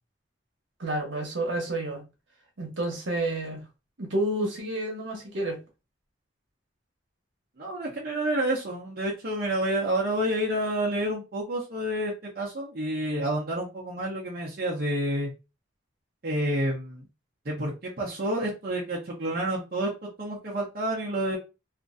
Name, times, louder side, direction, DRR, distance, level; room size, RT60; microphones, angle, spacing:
voice 1, 0.8-2.0 2.6-3.6 4.0-5.6, right 1 dB, 75° right, 1.1 m, -30 dB
voice 2, 7.6-15.3 16.2-17.0 17.4-21.4, right 1 dB, 55° right, 0.8 m, -29 dB
2.9 x 2.5 x 2.5 m
head